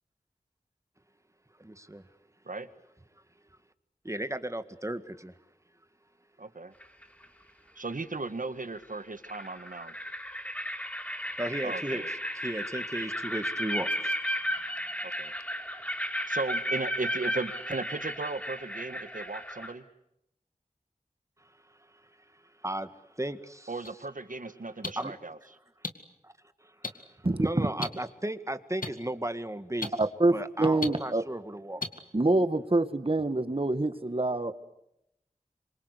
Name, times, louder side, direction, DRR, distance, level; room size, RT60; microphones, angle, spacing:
voice 1, 1.6-2.0 4.0-5.3 11.4-14.2 21.4-21.5 22.3-23.8 25.0-25.1 26.2-26.3 26.6-29.9 30.3-31.8, right 1 dB, 20° right, 10 dB, 1.9 m, -35 dB
voice 2, 6.4-6.7 7.8-9.9 11.6-12.1 15.0-15.3 16.3-19.8 23.7-25.4, right 3 dB, 70° right, 11 dB, 1.7 m, -36 dB
sound 1, 6.8-7.2 8.8-8.9 9.2-19.7, equal, 10° left, 5.0 m, -34 dB
sound 2, 23.8-23.9 24.8-24.9 25.8-25.9 26.8-26.9 27.8-27.9 28.8-28.9 29.8-29.9 30.8-30.9 31.8-31.9, left 3 dB, 75° left, 2.2 m, -31 dB
voice 3, 27.2-27.7 30.0-31.2 32.1-34.5, right 2 dB, 40° right, 9 dB, 2.0 m, -26 dB
27.0 x 25.0 x 8.3 m, 0.81 s
wide cardioid pair, 45°, 14 cm